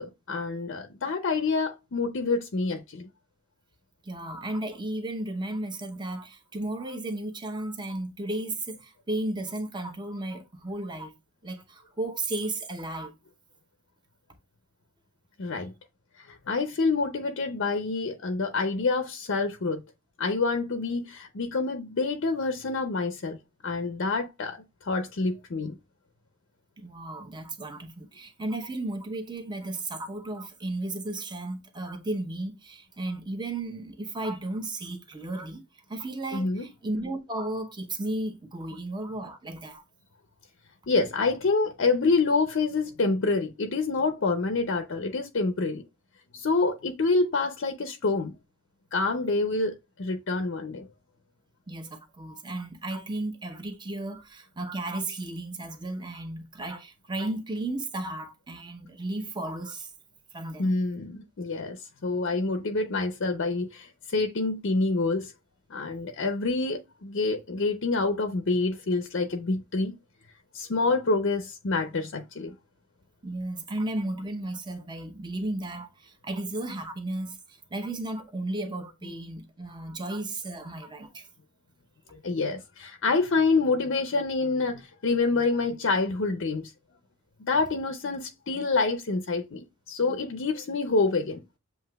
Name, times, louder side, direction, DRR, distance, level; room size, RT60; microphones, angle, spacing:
voice 1, 0.0-3.1 15.4-15.7 16.2-19.8 20.2-23.4 23.6-25.8 36.3-36.7 40.9-45.8 46.3-48.3 48.9-50.9 60.6-65.3 65.7-70.0 70.5-72.5 82.2-86.7 87.4-91.4, left 3 dB, 55° left, 0.5 m, -27 dB
voice 2, 4.0-11.1 11.4-13.1 26.8-35.6 35.9-39.8 51.7-59.9 60.3-60.7 73.2-81.3, right 2 dB, 20° right, 0.7 m, -34 dB
7.4 x 2.8 x 2.3 m
head